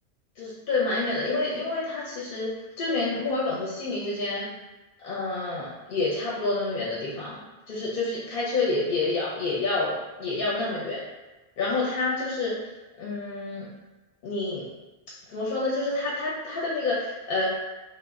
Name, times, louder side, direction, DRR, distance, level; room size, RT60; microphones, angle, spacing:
voice 1, 0.4-4.5 5.0-7.4 7.7-11.0 11.6-12.6 13.0-13.7 14.2-14.6 15.3-17.7, left 3 dB, 65° left, -6 dB, 0.7 m, -28 dB
2.0 x 2.0 x 3.4 m, 1.1 s
omnidirectional pair, 1.1 m